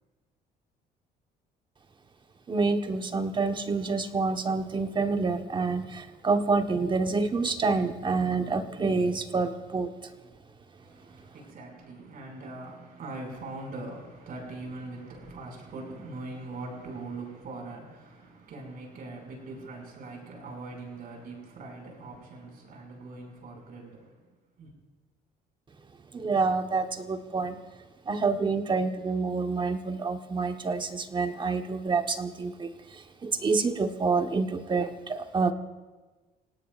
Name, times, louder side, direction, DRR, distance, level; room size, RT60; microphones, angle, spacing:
voice 1, 2.5-10.1 26.1-27.6 28.1-35.5, right 4 dB, 30° right, 6 dB, 1.1 m, -28 dB
voice 2, 10.8-24.2 24.6-24.7, right 2 dB, 60° right, 1 dB, 5.7 m, -41 dB
28.0 x 17.5 x 2.5 m, 1.3 s
cardioid pair, 110°, 17 cm